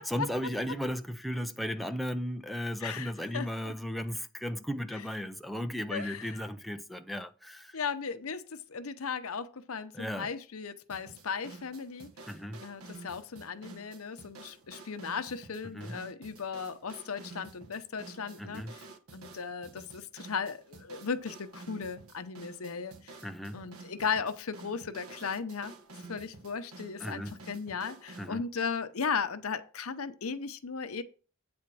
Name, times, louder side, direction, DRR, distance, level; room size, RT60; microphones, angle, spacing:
voice 1, 0.0-7.8 9.9-10.3 12.3-12.6 15.7-16.0 18.4-18.7 23.2-23.6 27.0-27.4 28.2-28.4, equal, ahead, 0.5 m, -35 dB
voice 2, 2.8-3.7 4.9-5.0 5.9-6.4 7.7-12.1 12.6-18.8 19.1-23.2 23.5-25.7 26.1-31.0, left 5 dB, 80° left, 0.8 m, -36 dB
sound 1, 10.9-28.4, right 3 dB, 90° right, 1.2 m, -50 dB
8.6 x 4.4 x 6.0 m
head